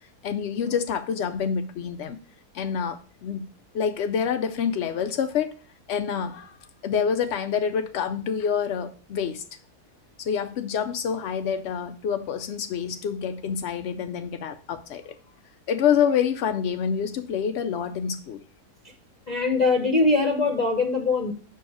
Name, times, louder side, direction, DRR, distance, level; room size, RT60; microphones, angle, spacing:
voice 1, 0.2-2.2 2.5-3.5 3.7-5.6 5.9-6.6 6.8-9.4 10.2-15.1 15.7-18.4, left 7 dB, 75° left, 0.6 m, -27 dB
voice 2, 19.3-21.3, left 3 dB, 35° left, 0.7 m, -22 dB
6.9 x 5.6 x 4.7 m
omnidirectional pair, 1.7 m